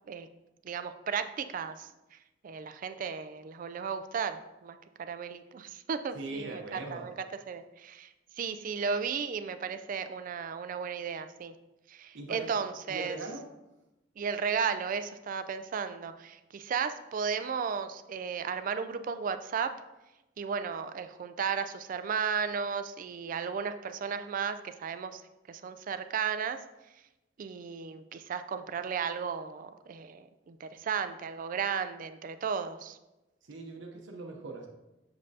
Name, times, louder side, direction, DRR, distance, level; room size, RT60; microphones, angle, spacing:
voice 1, 0.6-2.2 2.4-7.1 7.5-8.1 8.4-11.5 11.9-13.2 14.2-19.7 20.4-25.2 25.5-26.6 27.4-33.0, right 6 dB, 45° right, 10 dB, 0.3 m, -34 dB
voice 2, 6.1-7.1 12.1-12.5 12.9-13.5 33.4-34.7, right 2 dB, 80° right, 1 dB, 0.7 m, -40 dB
7.0 x 5.2 x 2.7 m, 0.98 s
head